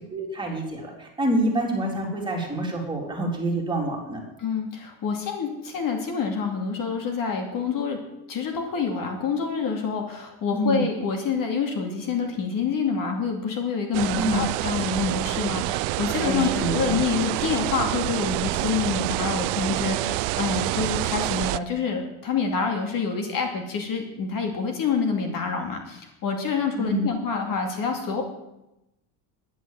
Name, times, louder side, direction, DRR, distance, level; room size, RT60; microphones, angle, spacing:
voice 1, 0.1-4.2 10.5-10.8 14.2-14.5 16.2-17.0 26.8-27.1, right 1 dB, 10° right, -1 dB, 3.8 m, -27 dB
voice 2, 4.4-8.0 8.3-28.2, left 5 dB, 50° left, 3 dB, 2.6 m, -27 dB
sound 1, 13.9-21.6, right 20 dB, 90° right, 0.5 m, -27 dB
11.0 x 10.0 x 7.7 m, 0.91 s
cardioid pair, 135°, 43 cm